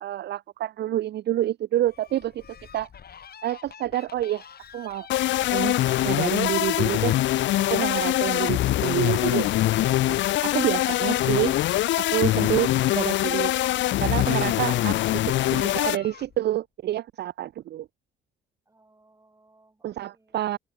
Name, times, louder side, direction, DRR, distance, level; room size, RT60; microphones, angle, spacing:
voice 1, 0.0-2.4 2.7-2.9 3.4-4.5 4.7-5.1 5.5-5.8 6.0-7.2 7.7-9.5 10.1-11.6 12.0-13.5 14.0-15.0 15.2-17.9 19.8-20.6, right 13 dB, 60° right, 0.5 m, -28 dB
Fowl, 1.8-16.6, left 7 dB, 50° left, 6.2 m, -47 dB
sound 1, 5.1-16.0, left 15 dB, 70° left, 0.5 m, -23 dB
voice 2, 18.7-20.6, right 2 dB, 15° right, 3.6 m, -61 dB
cardioid pair, 90°, 20 cm